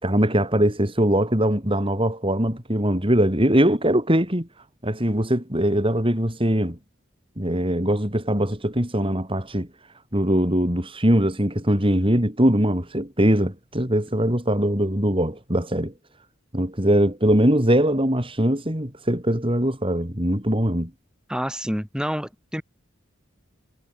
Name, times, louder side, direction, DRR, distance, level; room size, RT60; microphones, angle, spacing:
voice 1, 0.0-4.5 4.8-6.8 7.4-9.7 10.1-15.9 16.5-20.9, equal, 25° right, 6.0 m, -21 dB
voice 2, 21.3-22.6, equal, 5° right, 7.0 m, -28 dB
head